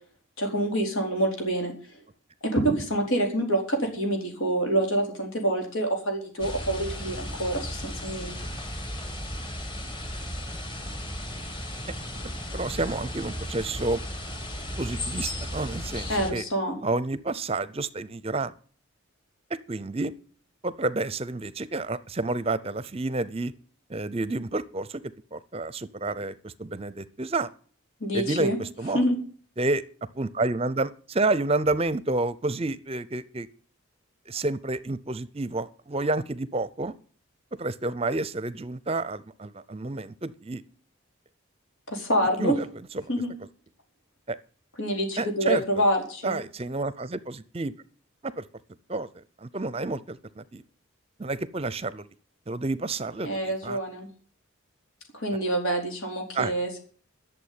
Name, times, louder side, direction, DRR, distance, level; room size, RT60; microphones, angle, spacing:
voice 1, 0.4-1.7 2.5-8.4 16.1-16.8 28.0-28.6 28.9-29.2 41.9-42.6 43.1-43.3 44.8-46.4 53.2-54.1 55.1-56.8, right 1 dB, 85° left, 2 dB, 4.5 m, -26 dB
sound 1, 6.4-16.3, left 1 dB, 20° left, 1.7 m, -35 dB
voice 2, 12.5-14.0 14.8-16.4 16.8-18.5 19.7-20.1 20.6-23.5 23.9-25.0 25.3-27.5 28.1-29.0 29.6-29.8 30.2-33.5 34.3-36.9 37.6-40.6 42.4-42.7 42.9-43.1 44.3-44.4 45.2-45.6 46.2-47.7 48.2-48.4 48.9-49.1 49.4-50.6 51.2-52.1 52.5-53.8 56.3-56.5, right 2 dB, 25° right, 17 dB, 0.6 m, -29 dB
11.5 x 7.1 x 9.6 m, 0.43 s
head